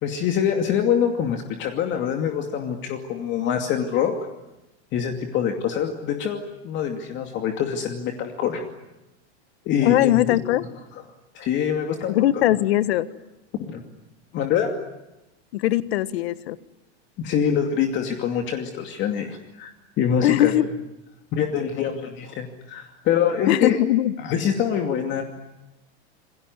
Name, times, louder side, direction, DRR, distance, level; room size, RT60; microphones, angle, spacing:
voice 1, 0.0-4.1 4.9-8.6 9.7-10.4 11.3-12.2 13.7-13.8 14.3-14.7 17.2-19.7 20.0-20.5 21.3-23.8 24.2-25.2, left 8 dB, 35° left, 4 dB, 2.5 m, -25 dB
voice 2, 9.8-10.6 12.1-13.1 15.5-16.6 20.2-20.6 23.5-24.1, left 14 dB, 65° left, 14 dB, 1.5 m, -20 dB
27.5 x 22.0 x 9.8 m, 0.96 s
supercardioid pair, 150°, 34 cm